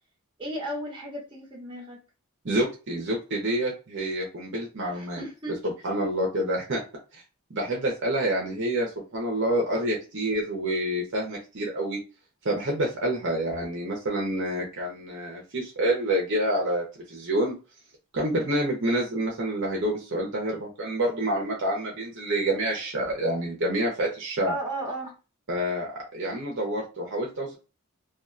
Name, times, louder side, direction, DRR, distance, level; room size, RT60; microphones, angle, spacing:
voice 1, 0.4-2.0 4.9-5.6 24.5-25.1, right 1 dB, 25° right, -4 dB, 1.2 m, -34 dB
voice 2, 2.4-5.2 5.6-6.8 7.1-7.2 7.5-12.0 12.4-17.5 18.1-24.5 25.5-27.6, right 1 dB, 55° right, -2 dB, 0.8 m, -28 dB
2.8 x 2.4 x 2.3 m, 0.31 s
head